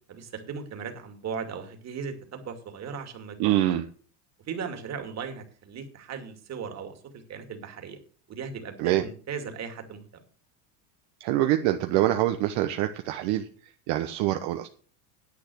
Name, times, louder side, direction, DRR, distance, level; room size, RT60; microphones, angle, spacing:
voice 1, 0.1-3.5 4.4-8.0 8.3-10.1, right 6 dB, 35° right, 6 dB, 2.4 m, -37 dB
voice 2, 3.4-3.8 8.8-9.0 11.2-13.5 13.9-14.7, right 13 dB, 60° right, 7 dB, 1.1 m, -25 dB
10.0 x 8.2 x 6.2 m, 0.42 s
supercardioid pair, 130°, 48 cm